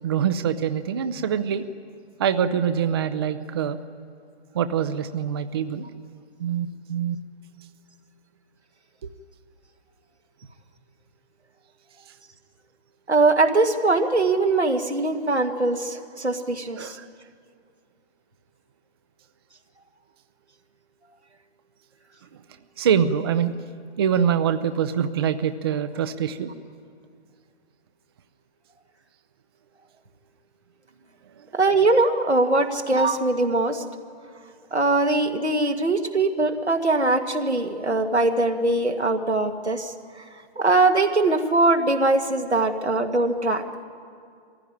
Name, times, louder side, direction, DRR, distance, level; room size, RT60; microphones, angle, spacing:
voice 1, 0.0-1.6 2.2-3.8 4.5-5.9 6.4-7.2 16.8-17.1 22.8-23.5 24.0-26.5, right 8 dB, 25° right, 10 dB, 0.5 m, -24 dB
voice 2, 13.1-17.0 31.5-33.8 34.7-40.2 40.6-43.6, right 2 dB, 90° right, 5 dB, 1.9 m, -21 dB
23.0 x 15.5 x 10.0 m, 2.3 s
figure-of-eight pair, 135°, 32 cm